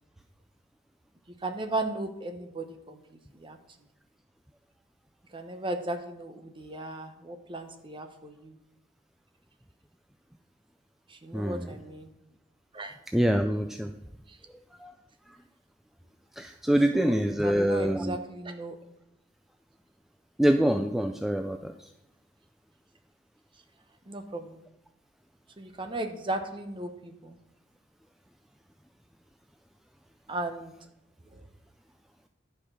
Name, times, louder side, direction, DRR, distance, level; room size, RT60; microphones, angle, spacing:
voice 1, 1.4-3.0 3.3-3.6 5.3-8.6 11.1-12.1 12.7-12.9 16.9-17.2 17.4-18.8 24.1-24.6 25.6-27.4 30.3-30.7 31.3-31.4, right 2 dB, 25° right, 6 dB, 0.9 m, -36 dB
voice 2, 11.3-11.7 13.1-13.9 14.8-14.9 16.4-18.2 20.4-21.7, equal, ahead, 5 dB, 0.3 m, -25 dB
11.0 x 5.0 x 6.0 m, 0.86 s
head